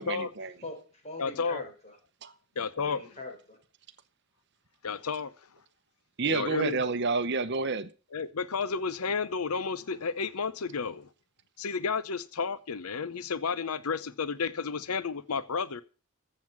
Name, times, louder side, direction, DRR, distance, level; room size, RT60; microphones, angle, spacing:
voice 1, 0.0-0.5 2.2-2.3 6.2-7.9, right 4 dB, 50° right, 0.9 m, -29 dB
voice 2, 0.6-2.0 2.8-3.6, left 1 dB, 30° left, 4.5 m, -43 dB
voice 3, 1.2-1.6 2.6-3.0 4.8-5.3 6.3-6.8 8.1-11.1 11.6-15.8, left 5 dB, 80° left, 0.7 m, -32 dB
14.5 x 7.7 x 6.1 m
head